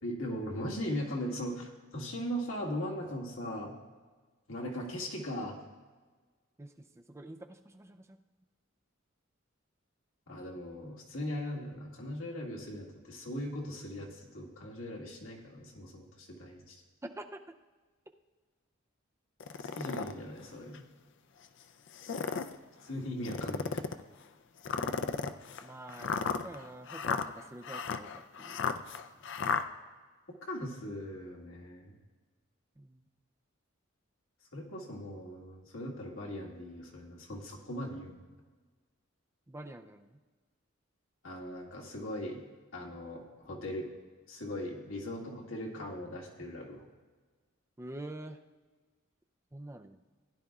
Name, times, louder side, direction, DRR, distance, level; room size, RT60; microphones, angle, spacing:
voice 1, 0.0-3.7 4.5-5.5 10.3-16.8 19.6-20.8 22.8-23.8 30.5-32.0 34.5-38.2 41.2-42.4 42.7-43.9 44.3-46.9, equal, 75° left, -1 dB, 2.0 m, -39 dB
voice 2, 6.6-8.2 17.0-17.4 25.6-28.6 32.8-33.0 39.5-40.2 47.8-48.4 49.5-50.0, right 1 dB, 15° right, 4 dB, 0.5 m, -46 dB
sound 1, 19.4-20.1 20.7-20.8 21.9-22.6 23.2-24.0 24.6-29.6, left 5 dB, 60° left, 0.4 m, -34 dB
16.0 x 10.0 x 2.4 m, 1.4 s
head